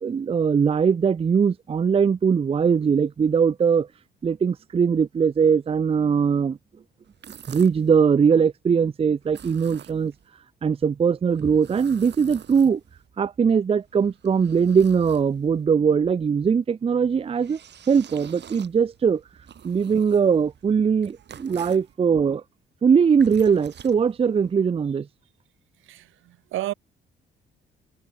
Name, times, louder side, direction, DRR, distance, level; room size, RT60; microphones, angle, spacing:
voice 1, 0.0-3.9 4.2-6.6 7.5-10.1 10.6-12.8 13.2-17.6 17.9-19.2 19.6-22.4 22.8-25.1, right 6 dB, 30° right, 0.5 m, -21 dB
sound 1, 7.0-7.9 9.2-10.3 11.3-13.1 13.8-15.6 17.0-21.9 22.9-24.5, right 9 dB, 60° right, 5.0 m, -47 dB
voice 2, 25.8-26.7, right 15 dB, 85° right, 1.7 m, -32 dB
cardioid pair, 90°, 20 cm